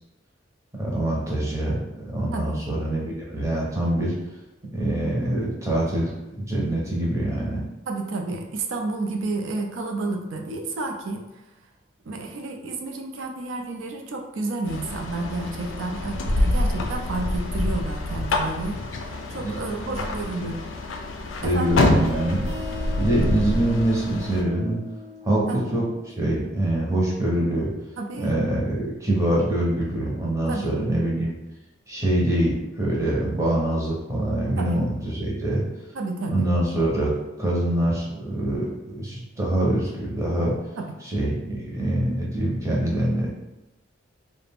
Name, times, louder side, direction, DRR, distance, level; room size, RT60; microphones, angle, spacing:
voice 1, 0.8-4.1 4.7-7.6 19.3-20.6 21.4-22.4 23.0-24.8 25.2-27.7 28.2-31.3 31.9-35.6 36.3-37.1 37.4-40.6 41.0-43.3, right 1 dB, 15° right, -4 dB, 0.6 m, -24 dB
voice 2, 7.9-11.2 12.1-18.8 19.0-20.6 21.4-21.8 25.5-25.6 28.0-28.3 30.5-30.7 34.6-34.8 35.9-36.5 40.8-40.9, right 3 dB, 80° right, 3 dB, 0.4 m, -31 dB
sound 1, 14.7-24.4, left 2 dB, 80° left, 0.4 m, -26 dB
sound 2, 22.0-27.4, left 3 dB, 65° right, 1.0 m, -40 dB
2.4 x 2.1 x 3.3 m, 0.98 s
head